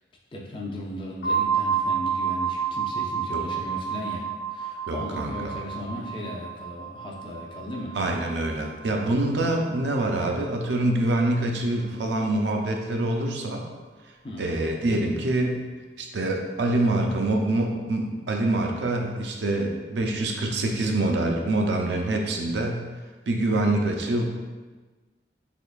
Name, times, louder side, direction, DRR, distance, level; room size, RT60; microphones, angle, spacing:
voice 1, 0.3-8.0 9.4-9.6 14.2-14.5, left 1 dB, 30° left, -2 dB, 0.4 m, -36 dB
sound 1, 1.2-10.9, right 7 dB, 80° left, 0.7 m, -31 dB
voice 2, 4.9-5.5 7.9-13.6 14.4-15.6 16.0-22.8 23.3-24.2, right 2 dB, 80° right, 2 dB, 0.5 m, -25 dB
3.4 x 3.3 x 2.3 m, 1.3 s
head